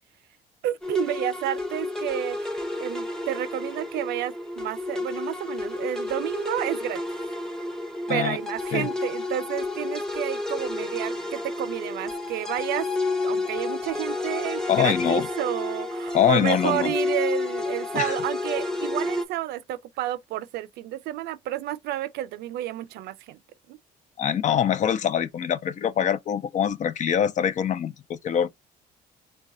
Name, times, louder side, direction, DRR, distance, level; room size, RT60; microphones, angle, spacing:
voice 1, 0.6-2.4 2.8-7.0 8.1-12.9 13.2-23.4 23.7-23.8, right 13 dB, 80° right, 0.5 m, -30 dB
sound 1, 0.8-19.2, left 2 dB, 5° left, 0.8 m, -30 dB
voice 2, 14.7-15.3 16.1-16.9 17.9-18.1 24.2-28.5, left 9 dB, 45° left, 0.5 m, -24 dB
3.2 x 2.3 x 3.7 m
cardioid pair, 110°, 17 cm